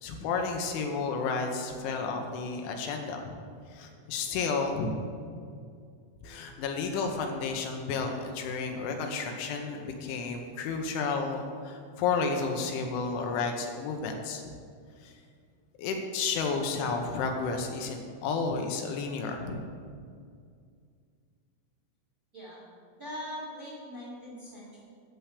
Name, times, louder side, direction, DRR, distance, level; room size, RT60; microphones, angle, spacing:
voice 1, 0.0-3.4 3.7-4.9 6.2-14.4 15.0-15.1 15.8-19.6, left 4 dB, 85° left, 3 dB, 3.2 m, -32 dB
voice 2, 23.0-24.8, left 1 dB, 20° right, -7 dB, 2.8 m, -41 dB
11.0 x 4.6 x 8.2 m, 2.2 s
omnidirectional pair, 5.6 m